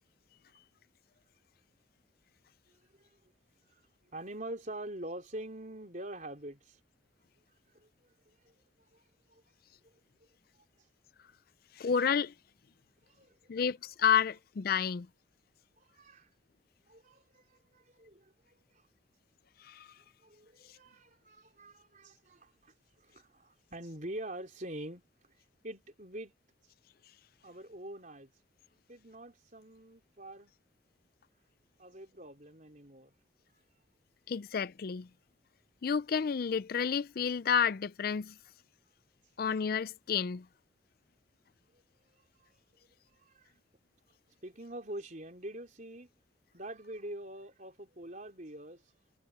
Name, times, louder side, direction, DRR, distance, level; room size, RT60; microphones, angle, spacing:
voice 1, 4.1-6.8 7.7-8.1 8.4-8.5 8.9-9.0 9.3-9.4 9.8-9.9 13.0-13.5 15.8-16.3 16.9-18.9 20.2-25.1 25.6-26.3 27.4-28.3 28.9-30.5 31.8-33.1 41.7-41.8 42.4-42.5 43.1-43.5 44.4-46.1 46.5-48.9, right 1 dB, 40° right, 4.2 m, -45 dB
voice 2, 11.8-12.3 13.5-15.1 19.6-19.9 34.3-35.1 35.8-38.3 39.4-40.4, left 7 dB, 50° left, 0.4 m, -30 dB
head